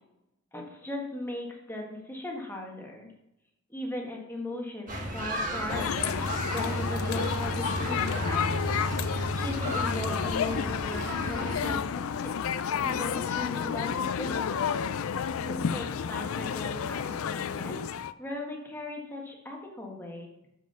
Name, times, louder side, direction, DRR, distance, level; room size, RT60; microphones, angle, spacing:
voice 1, 0.5-3.1 3.7-8.5 9.3-12.4 12.8-14.7 15.4-17.8 18.2-20.3, left 1 dB, 10° left, -1 dB, 1.4 m, -38 dB
sound 1, 4.9-11.8, right 1 dB, 40° right, 1.5 m, -33 dB
sound 2, 5.7-18.1, left 7 dB, 90° left, 0.4 m, -31 dB
7.3 x 6.2 x 5.6 m, 0.84 s
head